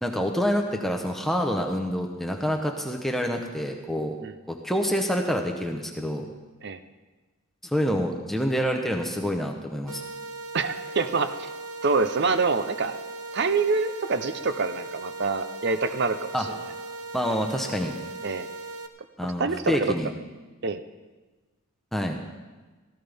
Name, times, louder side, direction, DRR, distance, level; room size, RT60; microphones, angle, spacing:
voice 1, 0.0-4.2 4.5-6.3 7.6-10.0 16.3-16.5 17.1-17.9 19.2-20.1 21.9-22.2, equal, ahead, 2 dB, 0.9 m, -27 dB
sound 1, 9.9-18.9, right 3 dB, 85° right, 0.9 m, -38 dB
voice 2, 10.5-11.5 11.8-12.9 13.3-16.5 18.2-18.5 19.2-19.9 20.6-20.8, right 4 dB, 50° right, 11 dB, 0.7 m, -26 dB
16.5 x 14.5 x 3.5 m, 1.3 s
head